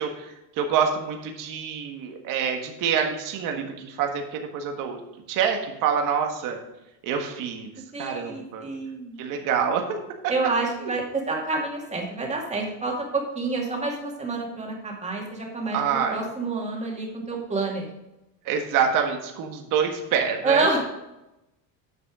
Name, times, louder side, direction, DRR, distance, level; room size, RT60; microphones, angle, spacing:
voice 1, 0.0-5.0 5.3-6.6 7.0-7.7 8.0-8.6 9.2-10.0 15.7-16.2 18.4-20.7, right 7 dB, 50° right, 3 dB, 1.6 m, -26 dB
voice 2, 7.9-9.2 10.3-15.8 16.1-17.9 20.4-20.8, right 3 dB, 15° right, -1 dB, 2.3 m, -28 dB
9.5 x 6.1 x 4.9 m, 0.92 s
cardioid pair, 140°, 41 cm